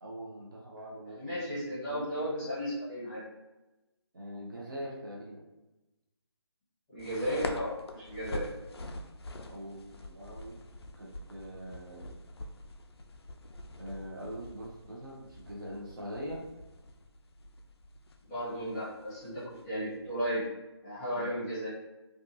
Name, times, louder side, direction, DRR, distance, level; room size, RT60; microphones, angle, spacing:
voice 1, 0.0-2.3 4.1-5.4 9.5-10.6 11.0-12.1 13.8-16.5 21.1-21.4, equal, 50° right, -2 dB, 0.6 m, -43 dB
voice 2, 1.1-3.2 6.9-8.5 18.3-20.4 20.8-21.7, equal, 10° left, -11 dB, 0.8 m, -34 dB
sound 1, 7.0-20.5, left 1 dB, 65° left, 0.4 m, -46 dB
2.6 x 2.4 x 2.6 m, 1.0 s
figure-of-eight pair, 160°, 14 cm